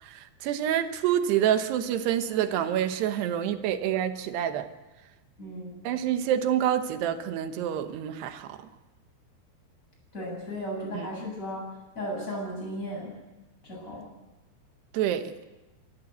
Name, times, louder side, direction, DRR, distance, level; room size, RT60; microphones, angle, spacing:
voice 1, 0.0-4.7 5.8-8.7 10.9-11.1 14.9-15.3, right 10 dB, 80° right, 9 dB, 3.2 m, -27 dB
voice 2, 5.4-5.8 10.1-11.6 11.9-13.2 13.6-14.0, equal, 20° left, -2 dB, 8.4 m, -35 dB
27.5 x 13.5 x 8.2 m, 1.1 s
omnidirectional pair, 4.8 m